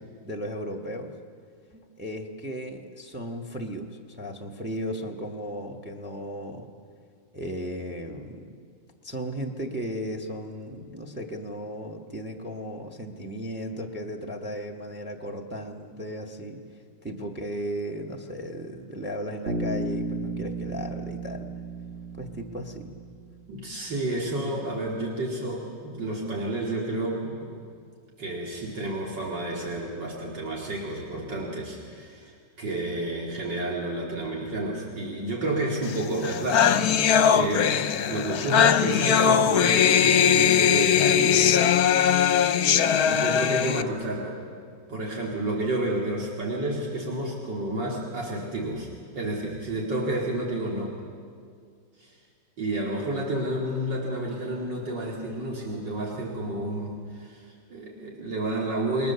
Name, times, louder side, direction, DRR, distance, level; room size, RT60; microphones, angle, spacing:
voice 1, 0.2-1.1 1.7-6.7 7.3-8.5 9.0-16.6 17.0-21.5 22.2-22.9, equal, 5° right, 3 dB, 1.4 m, -35 dB
Bass guitar, 19.5-23.3, right 2 dB, 35° right, 2.2 m, -33 dB
voice 2, 23.5-27.6 28.2-37.0 37.3-37.8 38.1-41.6 43.0-44.4 44.9-48.9 49.1-51.0 52.0-52.2 52.6-59.1, right 1 dB, 70° right, -3 dB, 3.3 m, -30 dB
sound 1, 36.0-36.1 36.2-43.8, left 8 dB, 60° left, 1.2 m, -20 dB
28.5 x 21.0 x 7.1 m, 2.1 s
omnidirectional pair, 2.0 m